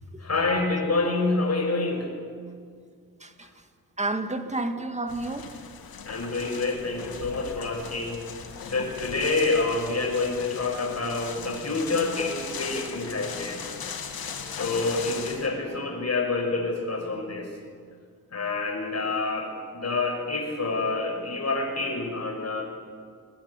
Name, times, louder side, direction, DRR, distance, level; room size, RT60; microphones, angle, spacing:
voice 1, 0.2-2.1 6.0-8.3 8.6-13.6 14.6-17.5 18.3-22.6, left 3 dB, 45° left, 6.4 m, -27 dB
voice 2, 3.2-3.6 4.0-5.5, right 2 dB, 20° right, 2.1 m, -31 dB
sound 1, 5.1-15.5, left 6 dB, 80° left, 2.5 m, -38 dB
22.0 x 21.0 x 9.8 m
cardioid pair, 95°, 36 cm